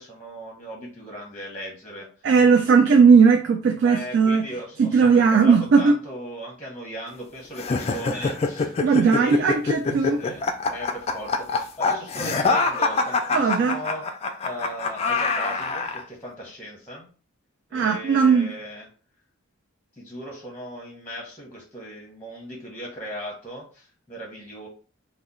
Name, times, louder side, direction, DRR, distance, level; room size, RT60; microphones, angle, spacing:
voice 1, 0.0-2.1 2.8-3.0 3.8-9.6 10.0-14.1 14.4-17.1 17.7-18.9 20.0-24.7, equal, 10° left, 0.8 m, -37 dB
voice 2, 2.2-4.5 4.8-5.9 8.8-10.2 13.3-13.8 17.7-18.5, right 5 dB, 60° right, 0.3 m, -17 dB
sound 1, 7.6-16.0, left 4 dB, 30° left, 0.3 m, -25 dB
2.8 x 2.1 x 3.7 m
head